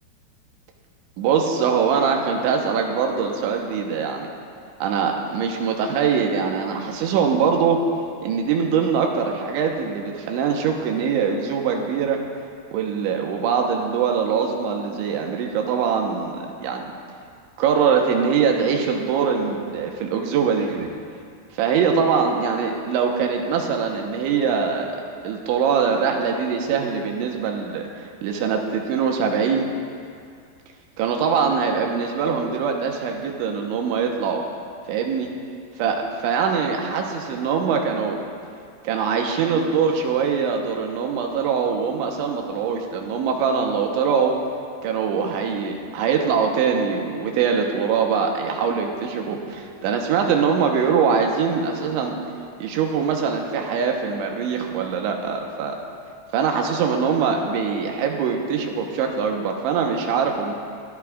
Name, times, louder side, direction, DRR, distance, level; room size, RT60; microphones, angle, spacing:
voice 1, 1.2-4.3 4.8-7.8 8.2-12.2 12.7-16.9 17.6-20.9 21.5-24.9 25.2-29.7 31.0-34.4 34.9-35.3 35.8-38.2 38.8-44.4 44.8-52.2 52.6-55.8 56.3-60.5, right 6 dB, 85° right, 2 dB, 3.4 m, -23 dB
21.0 x 13.0 x 2.5 m, 2.3 s
omnidirectional pair, 5.3 m